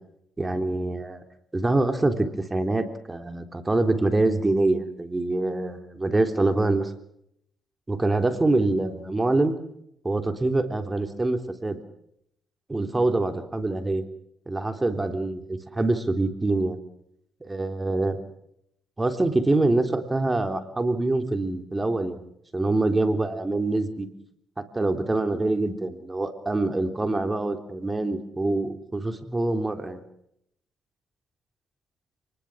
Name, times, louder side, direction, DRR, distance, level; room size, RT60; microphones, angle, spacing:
voice 1, 0.4-1.2 1.5-6.9 7.9-9.5 10.0-11.8 12.7-14.0 14.5-16.8 17.4-18.2 19.0-22.2 22.5-24.1 24.7-30.0, right 2 dB, 20° right, 7 dB, 3.4 m, -25 dB
29.5 x 20.5 x 6.3 m, 0.75 s
cardioid pair, 90°, 0 cm